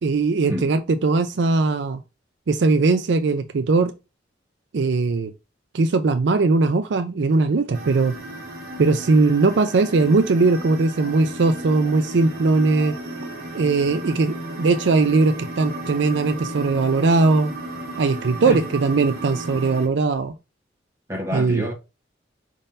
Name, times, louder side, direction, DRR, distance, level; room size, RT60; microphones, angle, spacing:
voice 1, 0.0-2.0 2.5-3.9 4.7-5.3 5.7-8.2 8.8-12.9 13.5-17.5 18.0-20.3 21.3-21.7, right 3 dB, 70° right, 0.4 m, -20 dB
sound 1, 7.7-19.9, right 1 dB, 55° right, 1.4 m, -34 dB
voice 2, 21.1-21.7, equal, 15° right, 1.5 m, -27 dB
5.1 x 3.8 x 2.7 m
head